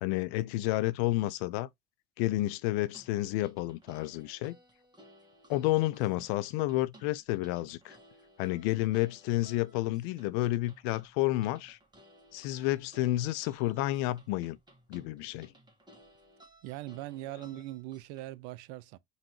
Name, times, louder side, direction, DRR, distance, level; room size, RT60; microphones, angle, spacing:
voice 1, 0.0-1.7 2.2-4.6 5.5-8.0 8.4-11.8 12.3-14.6 14.9-15.5, left 17 dB, 70° left, 0.6 m, -30 dB
sound 1, 2.9-18.2, equal, 15° right, 1.6 m, -59 dB
voice 2, 16.6-19.0, right 16 dB, 70° right, 0.6 m, -41 dB
5.5 x 2.9 x 2.9 m
hypercardioid pair, 70°, 31 cm